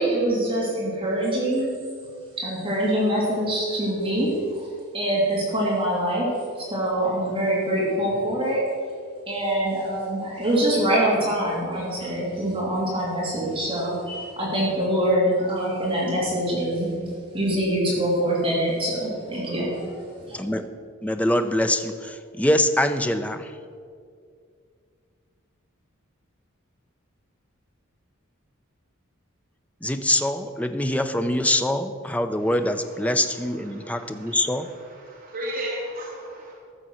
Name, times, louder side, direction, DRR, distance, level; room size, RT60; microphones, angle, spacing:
voice 1, 0.0-1.7 2.4-4.7 4.9-6.3 6.6-8.6 9.3-20.4, right 1 dB, 25° right, -6 dB, 2.7 m, -24 dB
voice 2, 20.3-20.7 21.0-23.5 29.8-34.7, left 1 dB, 5° left, 8 dB, 0.5 m, -24 dB
voice 3, 34.0-34.4 35.1-36.5, equal, 45° right, -6 dB, 2.2 m, -33 dB
14.0 x 6.8 x 6.3 m, 2.2 s
head